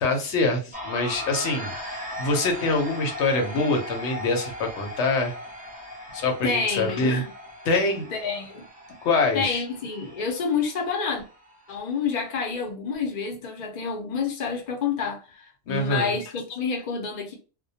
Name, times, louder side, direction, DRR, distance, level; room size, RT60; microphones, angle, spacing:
voice 1, 0.0-5.3 6.1-7.2 7.7-8.0 9.0-9.6 15.7-16.1, left 3 dB, 90° left, 1.0 m, -25 dB
sound 1, 0.7-12.7, left 1 dB, 10° right, 0.5 m, -38 dB
voice 2, 6.4-7.3 8.1-8.6 9.3-11.2 11.7-17.3, left 5 dB, 50° left, 0.7 m, -28 dB
2.2 x 2.1 x 2.7 m
omnidirectional pair, 1.1 m